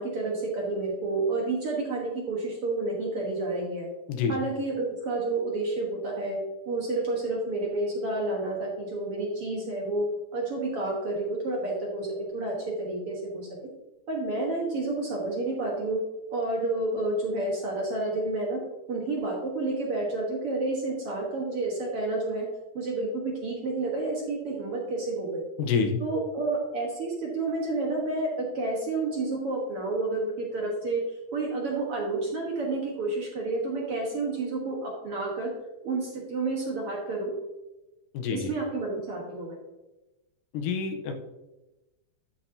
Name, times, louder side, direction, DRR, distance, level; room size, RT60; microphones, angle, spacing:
voice 1, 0.0-3.9 4.3-6.4 6.6-10.1 10.3-13.5 14.1-16.0 16.3-18.6 18.9-22.5 22.7-25.4 26.0-31.0 31.3-35.5 35.8-37.3 38.3-39.6, right 2 dB, 55° right, -2 dB, 1.7 m, -30 dB
voice 2, 25.6-26.0 38.1-38.5 40.5-41.1, left 6 dB, 80° left, 5 dB, 2.3 m, -27 dB
11.0 x 5.7 x 2.7 m, 1.0 s
omnidirectional pair, 3.9 m